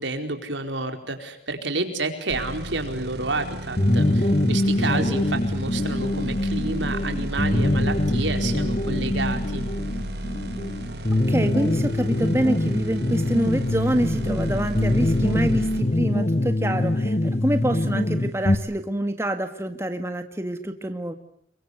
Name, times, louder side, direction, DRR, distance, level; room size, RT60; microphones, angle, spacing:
voice 1, 0.0-9.7, right 3 dB, 85° right, 6 dB, 4.6 m, -29 dB
sound 1, 2.3-15.8, right 1 dB, 65° right, 6.2 m, -34 dB
sound 2, 3.8-18.6, left 1 dB, 35° left, 1.5 m, -24 dB
voice 2, 11.3-21.1, right 1 dB, 15° right, 7 dB, 1.8 m, -26 dB
29.0 x 23.5 x 8.1 m, 0.71 s
head